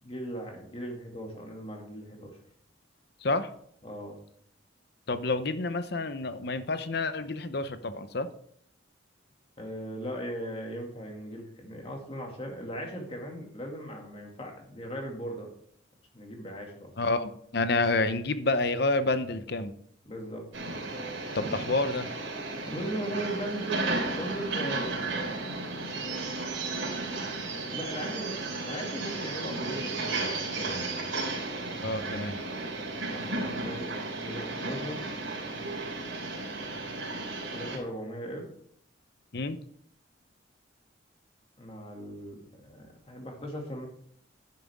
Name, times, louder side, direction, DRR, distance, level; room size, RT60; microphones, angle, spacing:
voice 1, 0.0-2.4 3.8-4.2 9.6-15.5 16.1-16.9 20.0-20.5 22.7-25.3 27.2-31.3 33.0-33.9 34.1-35.0 37.5-38.5 41.6-43.9, right 1 dB, 30° left, 1 dB, 2.4 m, -38 dB
voice 2, 5.1-8.3 17.0-19.7 21.3-22.1 31.8-32.4 39.3-39.6, left 2 dB, 55° left, 11 dB, 0.8 m, -29 dB
sound 1, 20.5-37.8, right 3 dB, 80° right, 3.5 m, -34 dB
11.0 x 10.5 x 3.6 m, 0.64 s
head